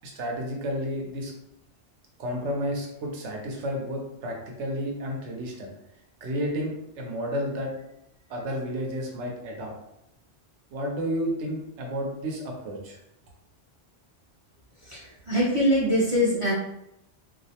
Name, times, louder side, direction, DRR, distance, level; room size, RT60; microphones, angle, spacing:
voice 1, 0.0-1.3 2.2-5.7 6.2-7.7 8.3-9.7 10.7-13.0, equal, 85° right, 1 dB, 0.9 m, -31 dB
voice 2, 14.8-16.5, equal, 40° right, -8 dB, 0.5 m, -23 dB
2.4 x 2.1 x 2.7 m, 0.83 s
omnidirectional pair, 1.2 m